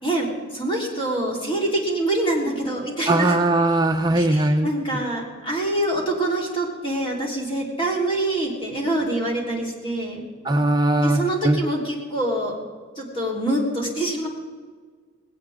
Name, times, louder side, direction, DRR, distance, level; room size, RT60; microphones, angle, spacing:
voice 1, 0.0-3.4 4.1-10.2 11.0-12.6 13.0-14.3, right 1 dB, 25° left, -2 dB, 3.8 m, -25 dB
voice 2, 3.1-4.7 10.4-11.6, right 2 dB, 20° right, 4 dB, 0.6 m, -20 dB
19.0 x 18.0 x 3.7 m, 1.6 s
head